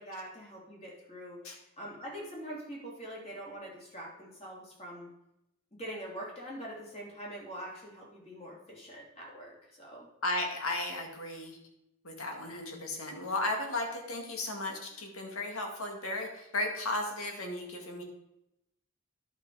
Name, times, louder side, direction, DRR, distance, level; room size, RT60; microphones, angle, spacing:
voice 1, 0.0-5.1 5.7-10.1, right 1 dB, 30° left, -4 dB, 3.2 m, -44 dB
voice 2, 10.2-11.6 12.0-18.0, left 2 dB, 75° left, 2 dB, 2.0 m, -35 dB
11.0 x 5.9 x 4.8 m, 0.85 s
head